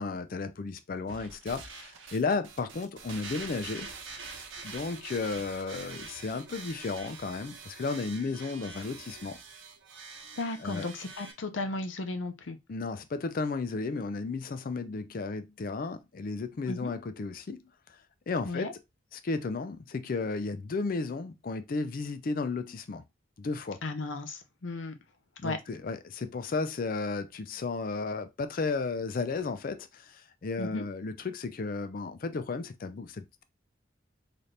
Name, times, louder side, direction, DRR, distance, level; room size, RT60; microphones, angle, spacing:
voice 1, 0.0-3.9 4.6-9.4 10.6-10.9 12.7-17.6 18.3-18.7 19.1-23.0 23.4-23.8 25.4-33.4, left 4 dB, 45° left, 0.4 m, -34 dB
sound 1, 1.1-11.3, right 4 dB, 85° right, 1.0 m, -45 dB
voice 2, 10.4-12.6 16.7-16.9 18.4-18.7 23.8-24.9 25.4-25.6 30.6-30.8, left 2 dB, 85° left, 0.7 m, -35 dB
4.1 x 2.5 x 3.3 m
head